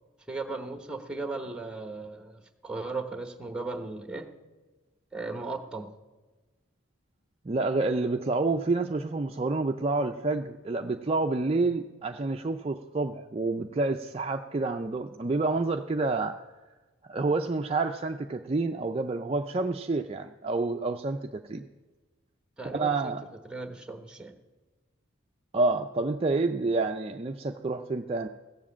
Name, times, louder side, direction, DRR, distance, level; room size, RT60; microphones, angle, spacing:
voice 1, 0.3-4.3 5.1-5.9 22.6-23.1 23.5-24.3, right 3 dB, 5° right, 7 dB, 1.0 m, -36 dB
voice 2, 7.4-16.4 17.1-21.6 22.6-23.2 25.5-28.3, right 3 dB, 30° right, 4 dB, 0.4 m, -28 dB
15.5 x 7.5 x 7.2 m, 1.3 s
head